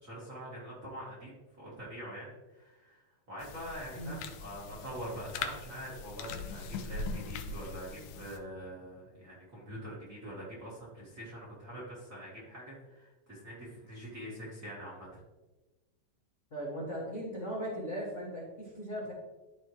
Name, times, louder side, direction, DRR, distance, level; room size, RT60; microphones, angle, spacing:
voice 1, 0.0-3.0 3.3-15.2, equal, 35° right, -5 dB, 1.5 m, -44 dB
sound 1, 3.4-8.4, left 4 dB, 85° left, 2.2 m, -41 dB
voice 2, 16.5-19.1, equal, 45° left, -6 dB, 1.0 m, -38 dB
12.5 x 4.5 x 3.1 m, 1.2 s
omnidirectional pair, 3.8 m